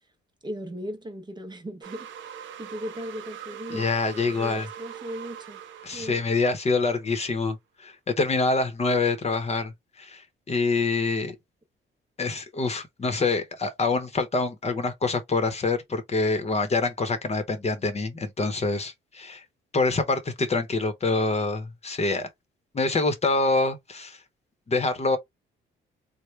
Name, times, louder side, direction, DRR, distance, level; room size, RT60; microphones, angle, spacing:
voice 1, 0.4-5.6 5.9-6.2, equal, 20° right, 0.7 m, -38 dB
sound 1, 1.8-7.1, right 9 dB, 70° right, 0.7 m, -42 dB
voice 2, 3.7-4.7 5.8-11.3 12.2-19.4 19.7-22.3 22.7-24.2 24.7-25.2, left 3 dB, 35° left, 0.8 m, -26 dB
3.2 x 2.1 x 3.2 m
cardioid pair, 90°, 20 cm